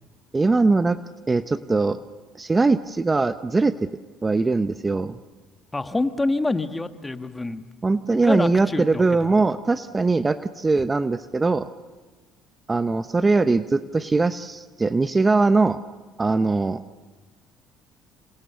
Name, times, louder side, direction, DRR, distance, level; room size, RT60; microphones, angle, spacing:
voice 1, 0.3-1.0 1.3-2.0 2.3-3.9 4.2-5.2 7.8-11.7 12.7-15.8 16.2-16.8, right 3 dB, 20° right, 12 dB, 0.8 m, -21 dB
voice 2, 5.7-7.6 8.2-9.0, left 2 dB, 15° left, 9 dB, 1.6 m, -26 dB
28.0 x 28.0 x 7.0 m, 1.3 s
supercardioid pair, 85°, 0 cm